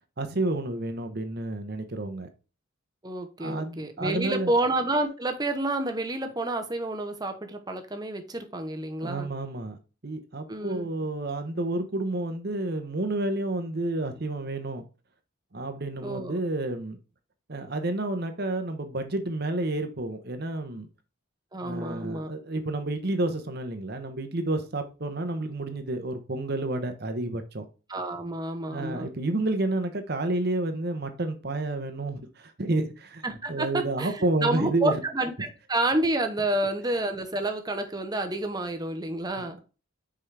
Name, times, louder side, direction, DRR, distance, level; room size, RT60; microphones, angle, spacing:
voice 1, 0.2-2.3 3.4-4.5 9.0-9.8 10.0-14.8 15.5-17.0 17.5-20.9 21.6-27.6 28.7-33.2 33.5-35.0 39.4-39.6, right 2 dB, 50° right, 0.9 m, -30 dB
voice 2, 3.0-9.3 10.5-10.9 16.0-16.4 21.5-22.3 27.9-29.1 33.2-34.1 34.4-39.6, right 2 dB, 20° right, 0.8 m, -29 dB
5.8 x 4.9 x 3.3 m
head